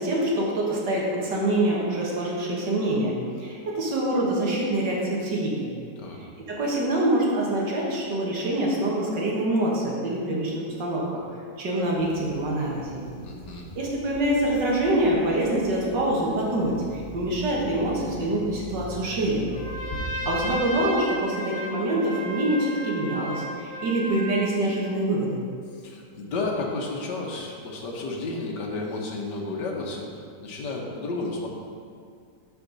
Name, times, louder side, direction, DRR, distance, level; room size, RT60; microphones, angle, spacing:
voice 1, 0.0-5.7 6.5-11.2 11.6-13.0 13.8-19.5 20.3-25.4, right 1 dB, 75° right, -4 dB, 2.1 m, -25 dB
sound 1, 11.8-20.6, left 1 dB, 50° left, 1.5 m, -41 dB
voice 2, 13.2-13.7 25.7-31.5, left 3 dB, 75° left, -1 dB, 1.7 m, -32 dB
Trumpet, 19.5-24.5, equal, 35° left, 2.5 m, -34 dB
12.0 x 4.5 x 4.0 m, 2.2 s
omnidirectional pair, 1.9 m